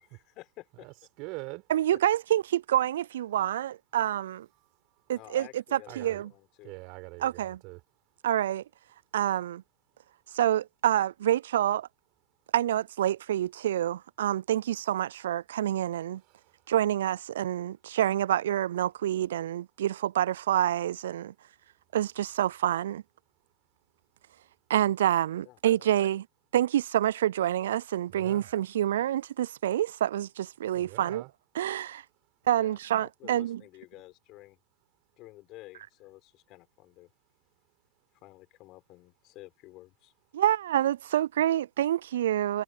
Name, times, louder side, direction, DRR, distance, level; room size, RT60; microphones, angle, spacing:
voice 1, 0.0-0.9 1.9-2.0 5.1-6.7 25.4-25.6 32.6-34.6 35.2-37.1 38.2-40.1, left 19 dB, 40° left, 6.2 m, -51 dB
voice 2, 0.8-1.6 5.9-6.2 6.6-7.8 28.1-28.5 30.7-31.3, right 27 dB, 45° right, 5.7 m, -43 dB
voice 3, 1.7-4.5 5.1-6.3 7.2-7.6 8.2-8.6 9.1-9.6 10.3-11.9 12.5-16.2 16.7-21.3 21.9-23.0 24.7-26.3 26.5-31.2 31.6-32.0 32.5-33.6 40.3-42.6, right 12 dB, 70° right, 0.3 m, -27 dB
hypercardioid pair, 105°, 0 cm